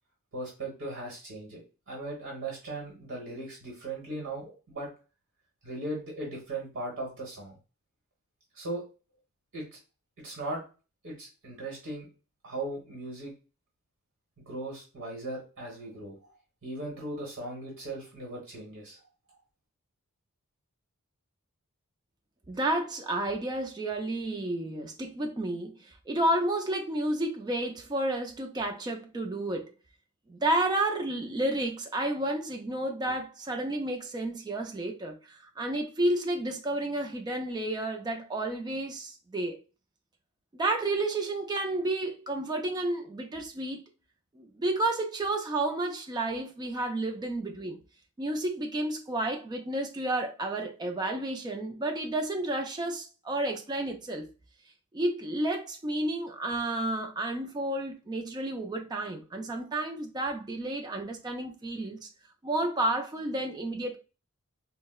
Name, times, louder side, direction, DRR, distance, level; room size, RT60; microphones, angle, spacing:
voice 1, 0.3-1.6 1.9-4.9 5.6-7.6 8.5-8.8 9.5-9.6 10.2-10.6 11.0-12.1 12.4-13.3 14.4-16.3 16.6-19.0, right 2 dB, 60° right, 1.2 m, -38 dB
voice 2, 22.5-29.7 30.3-39.6 40.5-43.8 44.4-47.8 48.2-54.3 54.9-62.1 62.4-64.0, right 1 dB, 20° right, 0.3 m, -31 dB
4.5 x 2.0 x 2.2 m
head